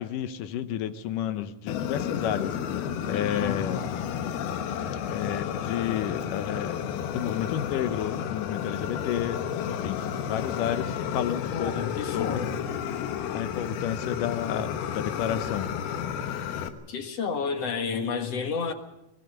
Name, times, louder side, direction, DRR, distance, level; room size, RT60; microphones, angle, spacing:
voice 1, 0.0-2.5 3.0-3.8 5.1-6.8 7.1-12.4 13.3-15.7, left 10 dB, 70° left, 11 dB, 2.2 m, -31 dB
Fire, 1.7-16.7, left 8 dB, 90° left, 3.1 m, -32 dB
voice 2, 3.1-3.8 11.5-12.6 16.9-18.7, left 5 dB, 50° left, 6 dB, 2.3 m, -31 dB
23.0 x 20.0 x 6.6 m, 0.88 s
omnidirectional pair, 4.2 m